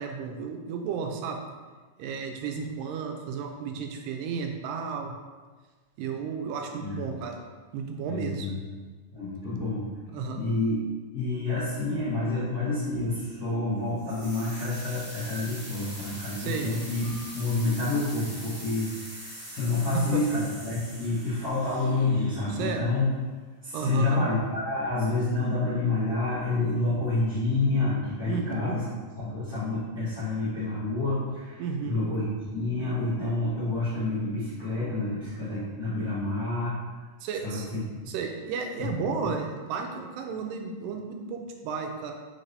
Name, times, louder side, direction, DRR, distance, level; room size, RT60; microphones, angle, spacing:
voice 1, 0.0-1.4 2.0-5.1 6.0-7.4 7.7-8.5 10.1-10.4 16.4-16.7 19.9-20.2 22.5-22.9 23.7-24.2 28.3-28.8 31.6-32.2 37.2-37.7 38.1-42.1, right 5 dB, 85° right, 3 dB, 2.2 m, -33 dB
voice 2, 8.1-8.6 9.1-9.9 10.3-10.8 11.1-23.1 23.6-28.8 29.2-36.8 37.4-37.8 38.8-38.9, left 2 dB, 80° left, -14 dB, 0.8 m, -28 dB
sound 1, 14.0-22.9, equal, 50° right, 1.4 m, -43 dB
5.2 x 3.2 x 2.6 m, 1.4 s
omnidirectional pair, 3.9 m